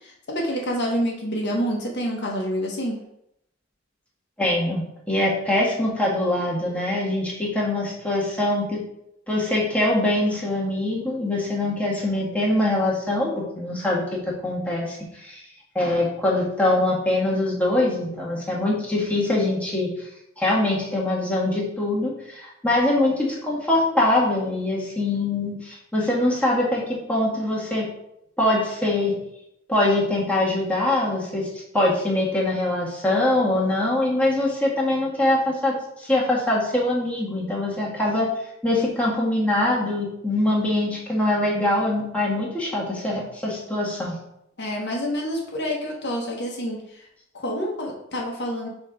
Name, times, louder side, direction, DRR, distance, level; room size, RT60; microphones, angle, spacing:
voice 1, 0.0-3.0 44.6-47.1 47.3-48.7, equal, 55° left, -1 dB, 1.4 m, -27 dB
voice 2, 4.4-8.8 9.3-15.4 15.7-19.9 20.4-27.9 28.4-29.1 29.7-31.5 31.7-38.3 38.6-44.1, left 1 dB, 5° left, -5 dB, 1.7 m, -23 dB
6.1 x 4.3 x 5.1 m, 0.78 s
head